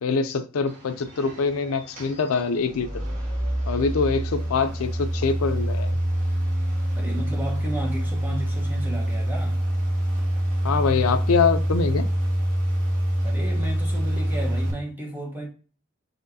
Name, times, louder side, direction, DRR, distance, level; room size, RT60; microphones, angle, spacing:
voice 1, 0.0-3.0 3.7-6.0 10.6-12.1, left 5 dB, 85° left, 0.4 m, -24 dB
swtch and start the fan ambiance, 0.7-14.7, equal, 40° right, 1.3 m, -26 dB
voice 2, 6.9-9.6 13.2-15.5, right 1 dB, 10° right, 1.0 m, -33 dB
4.1 x 3.4 x 2.6 m
head